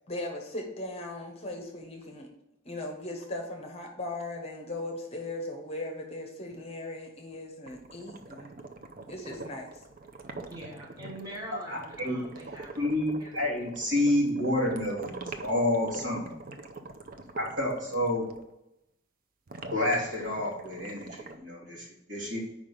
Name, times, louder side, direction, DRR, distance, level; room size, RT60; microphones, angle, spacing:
voice 1, 0.1-2.3 2.6-8.5 9.1-9.7 10.3-10.4, left 2 dB, 30° left, 3 dB, 1.0 m, -38 dB
sound 1, 7.7-18.4 19.5-21.4, right 3 dB, 45° right, 0.6 m, -45 dB
voice 2, 10.5-12.9 13.2-13.3, right 1 dB, 20° right, -4 dB, 1.3 m, -44 dB
voice 3, 11.5-12.2 12.8-16.4 17.4-18.2 19.7-22.4, left 1 dB, 65° right, -4 dB, 2.8 m, -29 dB
5.0 x 4.9 x 5.5 m, 0.87 s
head